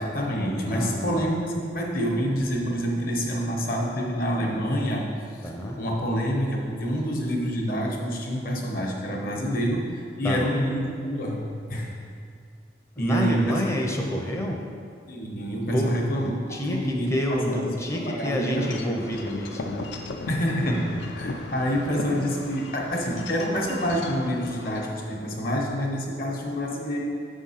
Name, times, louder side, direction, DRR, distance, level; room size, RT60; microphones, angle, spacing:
voice 1, 0.0-5.1 5.4-5.5 5.8-12.0 13.0-14.1 14.5-14.6 15.1-16.3 16.7-19.1 20.3-27.0, equal, 50° left, 0 dB, 1.0 m, -27 dB
voice 2, 0.7-1.3 5.4-5.8 10.2-10.5 13.0-14.6 15.7-19.9, left 1 dB, 15° left, 1 dB, 0.5 m, -29 dB
Wind chime / Wind, 18.6-24.9, left 3 dB, 80° left, 0.5 m, -37 dB
6.9 x 3.7 x 5.6 m, 2.2 s
head